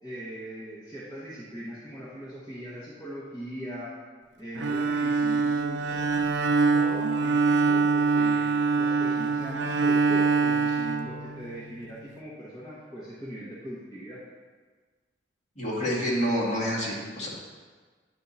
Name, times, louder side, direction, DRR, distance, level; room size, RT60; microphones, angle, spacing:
voice 1, 0.0-3.9 4.4-6.0 6.7-14.2, equal, 20° left, -10 dB, 1.1 m, -40 dB
Bowed string instrument, 4.6-11.7, right 4 dB, 70° right, 0.5 m, -24 dB
voice 2, 15.6-17.3, equal, 40° left, -8 dB, 1.9 m, -28 dB
9.4 x 3.6 x 4.1 m, 1.5 s
head